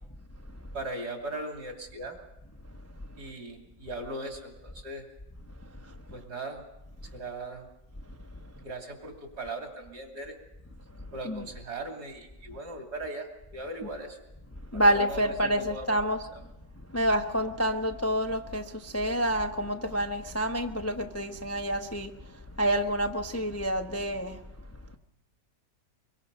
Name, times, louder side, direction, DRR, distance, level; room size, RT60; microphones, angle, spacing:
voice 1, 0.7-2.2 3.2-5.1 6.1-6.6 7.1-7.7 8.6-10.3 11.1-14.2 14.7-15.9, right 2 dB, 65° right, 2 dB, 3.5 m, -39 dB
voice 2, 14.7-16.3 16.9-22.1 22.6-24.4, equal, 20° left, 5 dB, 0.4 m, -28 dB
24.0 x 23.0 x 5.4 m, 0.94 s
omnidirectional pair, 1.9 m